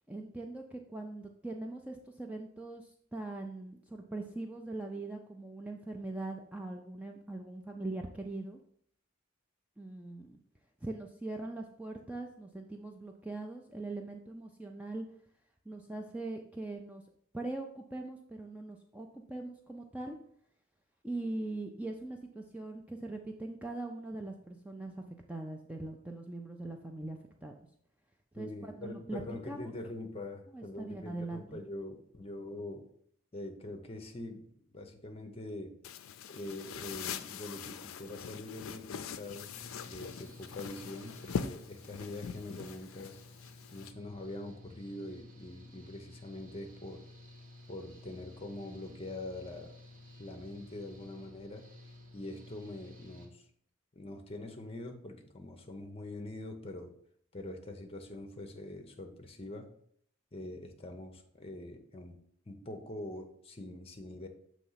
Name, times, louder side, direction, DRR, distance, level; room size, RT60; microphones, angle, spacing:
voice 1, 0.1-8.6 9.8-10.4 10.8-15.1 15.7-17.0 17.3-20.2 21.0-27.7 28.3-29.7 30.5-31.6, right 2 dB, 5° right, 2 dB, 0.4 m, -41 dB
voice 2, 28.4-32.9 33.3-35.8 36.3-43.2 43.7-47.0 47.7-49.7 50.2-51.6 52.1-53.5 53.9-56.9 57.3-59.7 60.3-64.3, left 2 dB, 30° left, 5 dB, 0.8 m, -44 dB
sound 1, 35.8-43.9, left 6 dB, 75° left, 0.4 m, -42 dB
Engine / Mechanical fan, 39.3-53.3, left 2 dB, 65° right, 1.6 m, -54 dB
6.9 x 3.1 x 5.6 m, 0.65 s
head